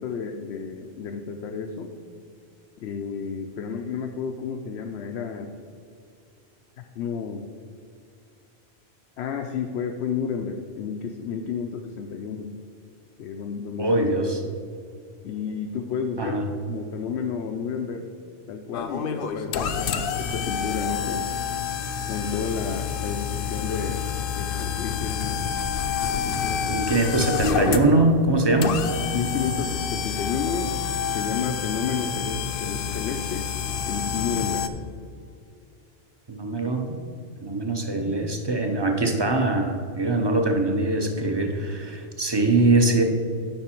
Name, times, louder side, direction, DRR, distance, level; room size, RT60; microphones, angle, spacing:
voice 1, 0.0-1.9 2.8-5.6 6.8-7.5 9.2-12.5 13.2-13.9 15.2-16.4 16.7-18.1 18.5-21.3 22.1-24.1 24.3-25.4 26.0-26.8 29.1-30.8 31.1-33.5 33.8-34.7, left 6 dB, 90° left, 4 dB, 0.9 m, -31 dB
voice 2, 13.8-14.4 16.2-16.5 26.7-28.8 36.3-37.0 37.4-43.0, right 2 dB, 25° right, 4 dB, 0.7 m, -22 dB
sound 1, 18.7-34.7, left 7 dB, 65° left, 0.7 m, -28 dB
8.7 x 5.7 x 4.4 m, 2.3 s
omnidirectional pair, 1.1 m